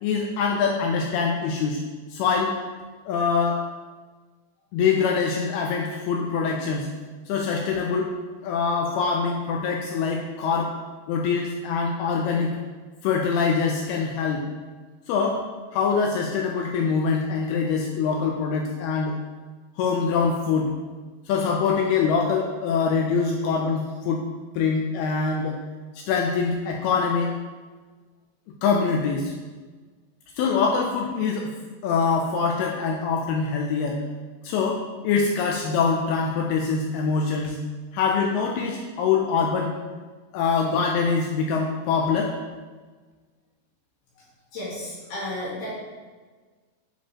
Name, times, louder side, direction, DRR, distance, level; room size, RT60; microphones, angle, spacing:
voice 1, 0.0-1.8 2.1-2.6 3.1-3.6 4.7-6.9 7.3-8.1 8.4-10.8 11.1-12.6 13.0-14.4 15.1-15.4 15.7-19.1 19.8-20.7 21.3-24.2 24.6-25.6 26.0-27.3 28.6-29.3 30.4-31.5 31.8-34.0 34.4-37.6 37.9-39.7 40.3-42.3, left 5 dB, 85° left, 0 dB, 2.2 m, -24 dB
voice 2, 44.5-45.7, left 1 dB, 65° left, -8 dB, 3.5 m, -33 dB
7.3 x 4.9 x 2.9 m, 1.4 s
omnidirectional pair, 5.0 m